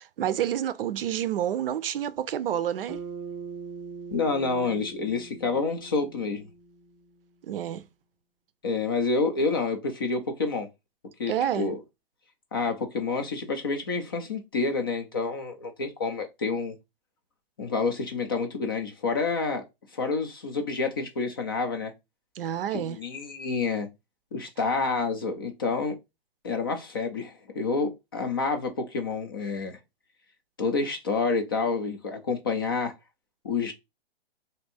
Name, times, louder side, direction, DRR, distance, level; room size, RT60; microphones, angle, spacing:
voice 1, 0.0-3.0 7.4-7.9 11.3-11.7 22.4-23.0, right 10 dB, 60° right, 0.5 m, -29 dB
Bass guitar, 2.9-7.3, right 5 dB, 10° right, 0.8 m, -42 dB
voice 2, 4.1-6.5 8.6-10.7 11.2-11.8 12.5-16.7 17.6-19.6 19.9-21.9 22.7-23.9 24.3-26.0 26.4-29.8 30.6-32.9 33.4-33.7, left 4 dB, 25° left, 0.3 m, -28 dB
3.5 x 2.6 x 4.1 m
hypercardioid pair, 155°, 32 cm